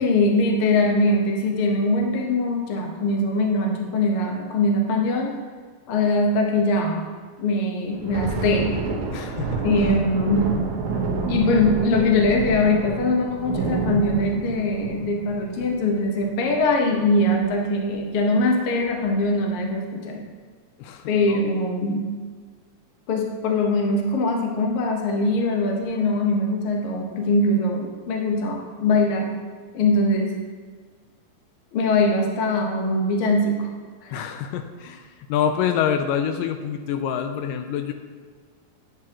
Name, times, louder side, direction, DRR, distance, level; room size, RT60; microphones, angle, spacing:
voice 1, 0.0-5.4 5.9-7.0 7.4-8.8 9.6-10.5 11.3-20.2 21.1-22.1 23.1-29.3 29.7-30.4 31.7-33.7 34.0-34.2, left 2 dB, 65° left, 1 dB, 1.4 m, -22 dB
Thunder, 7.9-16.9 17.3-17.5 17.9-18.1 18.7-19.2, right 4 dB, 70° right, 1.2 m, -29 dB
voice 2, 9.1-9.7 20.2-20.3 20.8-21.5 34.1-37.9, left 8 dB, 80° left, 7 dB, 2.1 m, -26 dB
10.0 x 8.6 x 2.9 m, 1.5 s
omnidirectional pair, 3.9 m